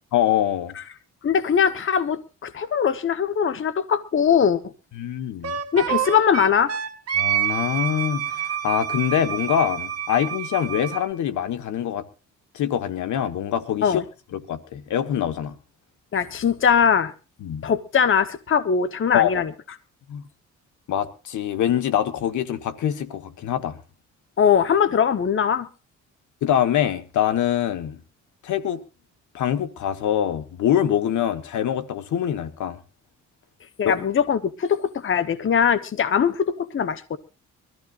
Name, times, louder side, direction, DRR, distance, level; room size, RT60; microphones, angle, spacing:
voice 1, 0.1-0.7 4.9-5.6 7.2-12.0 12.5-14.0 14.3-15.5 17.4-17.6 19.1-19.4 20.1-20.2 20.9-23.8 26.4-28.0 28.4-28.8 29.3-32.8 33.8-34.0, left 10 dB, 75° left, 1.6 m, -24 dB
voice 2, 1.2-4.6 5.7-6.7 13.8-14.0 16.1-17.1 17.6-19.5 24.4-25.7 33.8-37.2, left 7 dB, 40° left, 1.2 m, -21 dB
Wind instrument woodwind instrument, 5.4-11.1, right 10 dB, 55° right, 1.8 m, -27 dB
23.5 x 14.0 x 2.6 m
cardioid pair, 90°, 30 cm